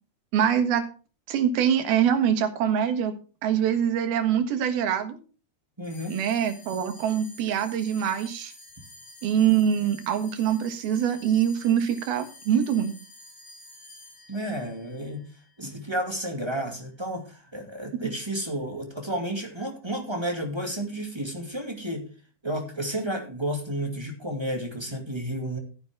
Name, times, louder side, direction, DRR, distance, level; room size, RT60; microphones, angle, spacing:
voice 1, 0.3-0.8 1.3-3.1 3.4-5.2 6.1-8.5 9.2-12.9, right 9 dB, 90° right, 8 dB, 3.4 m, -24 dB
sound 1, 5.8-16.5, left 1 dB, 50° left, 8.0 m, -49 dB
voice 2, 5.8-6.2 14.3-15.2 15.6-22.0 22.4-25.6, right 1 dB, 10° right, 3 dB, 1.5 m, -31 dB
13.0 x 10.5 x 3.5 m, 0.36 s
omnidirectional pair, 4.2 m